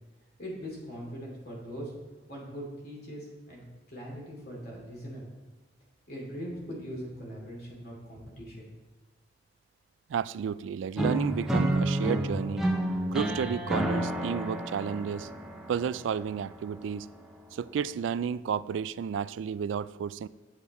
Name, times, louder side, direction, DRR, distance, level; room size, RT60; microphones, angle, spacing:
voice 1, 0.4-1.9 2.3-5.2 6.1-8.7, equal, 55° left, 2.7 m, -41 dB
voice 2, 10.1-12.7 13.1-15.3 15.7-17.1 17.5-20.3, right 7 dB, 90° right, 0.3 m, -32 dB
sound 1, 11.0-16.9, right 1 dB, ahead, 0.6 m, -30 dB
8.1 x 7.1 x 4.2 m
head